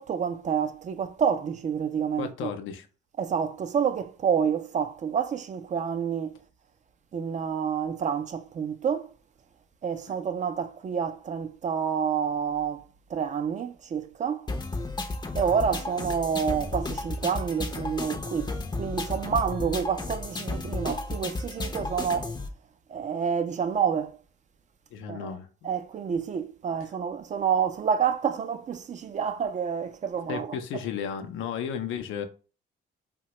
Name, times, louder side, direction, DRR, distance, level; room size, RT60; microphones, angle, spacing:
voice 1, 0.0-2.5 3.2-6.4 7.1-9.1 9.8-14.5 15.3-22.3 22.9-24.2 25.1-25.4 25.6-30.8, right 7 dB, 40° right, 0.4 m, -28 dB
voice 2, 2.2-2.9 24.9-25.7 30.3-32.3, left 8 dB, 80° left, 0.5 m, -34 dB
sound 1, 14.5-22.5, left 2 dB, 20° left, 0.5 m, -33 dB
2.9 x 2.1 x 2.9 m
cardioid pair, 90°, 20 cm